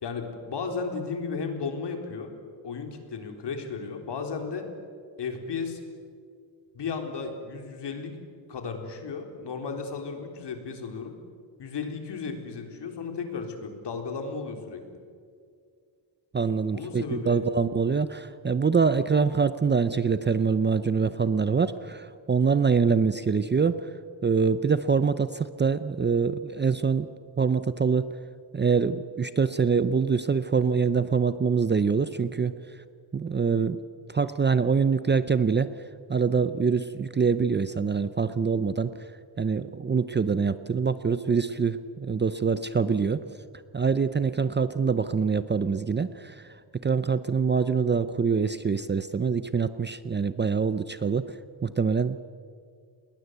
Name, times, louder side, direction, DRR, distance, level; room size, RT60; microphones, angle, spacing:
voice 1, 0.0-2.3 2.6-4.7 5.2-5.8 6.7-8.1 8.5-11.1 11.6-14.8 16.7-17.4, left 5 dB, 60° left, 4 dB, 4.0 m, -34 dB
voice 2, 16.3-23.8 24.2-27.1 27.4-28.1 28.5-32.5 33.1-33.8 34.1-35.7 36.1-38.9 39.4-43.2 43.7-46.4 46.8-51.2 51.6-52.2, right 5 dB, 25° right, 13 dB, 0.6 m, -24 dB
29.0 x 21.0 x 8.1 m, 2.2 s
cardioid pair, 140°, 47 cm